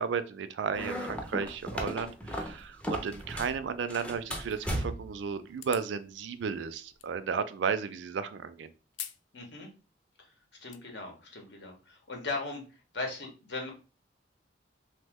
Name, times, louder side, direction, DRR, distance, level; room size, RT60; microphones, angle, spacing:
voice 1, 0.0-8.7, right 6 dB, 75° right, 11 dB, 0.3 m, -34 dB
sound 1, 0.7-3.6 3.9-5.2, equal, 5° left, 0.4 m, -36 dB
sound 2, 5.5-6.0 7.0-7.1 8.9-9.3 9.6-9.7 10.4-10.8, left 11 dB, 90° left, 0.3 m, -42 dB
voice 2, 9.3-9.7 10.2-10.3 10.6-12.6 12.9-13.7, left 3 dB, 70° left, 2 dB, 0.9 m, -38 dB
2.9 x 2.1 x 3.4 m, 0.34 s
head